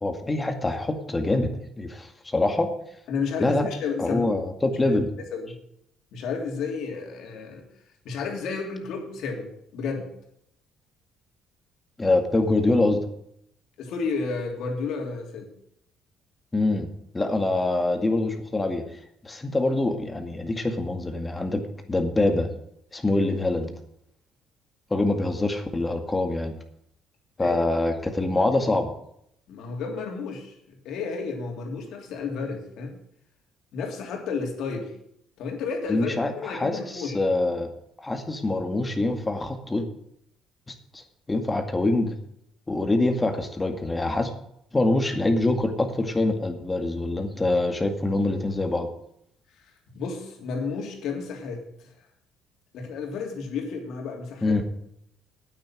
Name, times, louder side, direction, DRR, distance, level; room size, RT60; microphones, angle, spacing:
voice 1, 0.0-1.5 1.8-2.7 3.4-3.7 4.0-5.1 12.0-13.0 16.5-16.9 17.1-18.8 19.2-22.5 22.9-23.7 24.9-26.6 27.4-28.9 35.9-37.7 38.0-39.9 40.9-41.0 41.3-42.1 42.7-44.3 44.7-48.9 54.4-54.6, left 2 dB, 20° left, 5 dB, 2.1 m, -24 dB
voice 2, 3.1-4.2 5.3-5.6 6.1-7.6 8.0-10.1 13.8-15.5 27.4-27.6 29.5-33.0 33.7-34.9 35.4-37.2 49.9-51.9 52.7-54.6, left 5 dB, 70° left, 2 dB, 3.1 m, -32 dB
9.2 x 8.9 x 7.7 m, 0.73 s
supercardioid pair, 75°, 0 cm